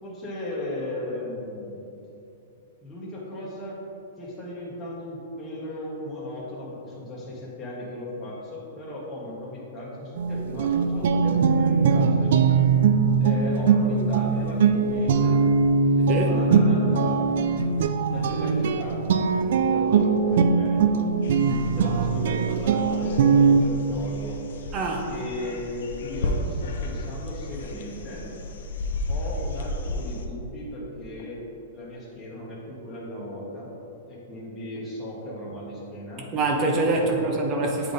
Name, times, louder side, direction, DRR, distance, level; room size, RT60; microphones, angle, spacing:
voice 1, 0.0-1.9 2.8-3.8 4.2-12.6 13.2-15.4 15.8-17.4 18.1-21.1 21.6-24.4 25.1-28.3 29.1-31.4 31.7-33.7 34.1-36.3 36.9-37.5, left 1 dB, 15° left, -7 dB, 1.2 m, -36 dB
sound 1, 10.2-23.6, right 5 dB, 65° right, 0.3 m, -21 dB
sound 2, 21.2-30.3, left 2 dB, 75° left, 0.6 m, -33 dB
voice 2, 24.7-25.0 36.3-37.9, right 2 dB, 30° right, 0 dB, 0.7 m, -24 dB
7.6 x 3.5 x 3.9 m, 2.8 s
hypercardioid pair, 140°, 0 cm